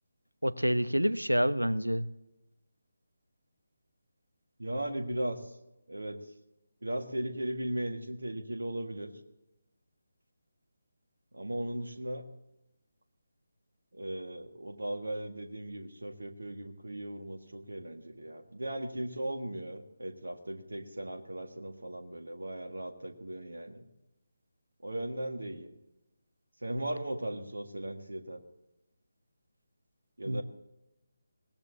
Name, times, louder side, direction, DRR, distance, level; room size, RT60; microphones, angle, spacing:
voice 1, 0.4-2.1 30.3-30.4, equal, 90° right, 15 dB, 0.8 m, -27 dB
voice 2, 4.6-5.6 5.9-6.3 6.8-9.1 11.3-12.2 13.9-23.9 24.8-25.7 26.6-28.4 30.2-30.4, right 1 dB, 70° right, 5 dB, 1.8 m, -37 dB
20.5 x 18.0 x 2.8 m, 0.94 s
figure-of-eight pair, 150°, 0 cm